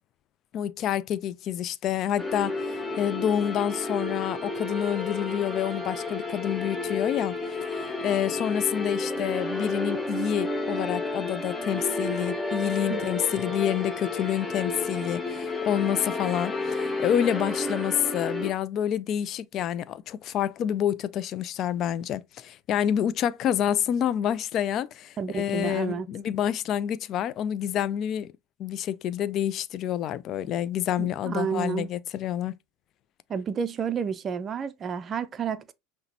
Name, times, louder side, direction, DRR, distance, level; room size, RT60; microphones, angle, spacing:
voice 1, 0.5-7.3 7.7-28.3 28.6-32.5, left 10 dB, 45° left, 0.3 m, -28 dB
sound 1, 2.2-18.5, left 2 dB, 10° left, 0.8 m, -31 dB
voice 2, 25.2-26.1 31.0-31.9 33.3-35.7, right 6 dB, 35° right, 0.4 m, -30 dB
5.7 x 2.1 x 2.8 m
hypercardioid pair, 75°, 0 cm